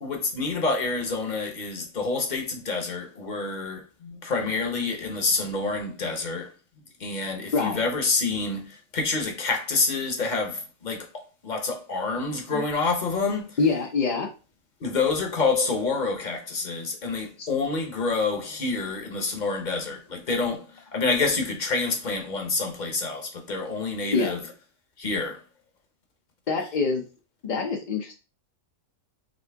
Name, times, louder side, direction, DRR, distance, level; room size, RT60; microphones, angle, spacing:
voice 1, 0.0-6.5 7.0-11.1 11.4-13.5 14.8-20.7 20.9-24.4 25.0-25.4, left 3 dB, 35° left, 0.8 m, -27 dB
voice 2, 13.6-14.3 17.4-17.5 24.1-24.3 26.5-27.0 27.4-28.1, left 4 dB, 60° left, 0.5 m, -25 dB
5.2 x 2.7 x 3.4 m
omnidirectional pair, 1.7 m